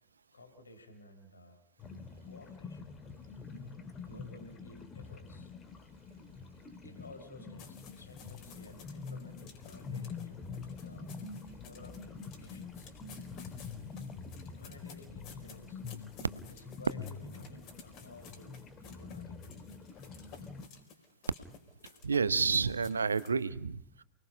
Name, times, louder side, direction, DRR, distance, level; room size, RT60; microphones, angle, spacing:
voice 1, 0.3-1.6 2.2-3.0 3.5-5.5 6.8-11.1 11.6-12.9 14.4-15.8 16.5-19.6, left 1 dB, 75° left, 6 dB, 4.1 m, -55 dB
sound 1, 1.8-20.7, left 5 dB, 25° left, 2.1 m, -46 dB
sound 2, 7.6-23.4, left 6 dB, 40° left, 4.8 m, -56 dB
voice 2, 22.0-24.0, right 5 dB, 75° right, 15 dB, 0.9 m, -30 dB
28.5 x 21.0 x 5.6 m, 0.69 s
figure-of-eight pair, 90°, 0 cm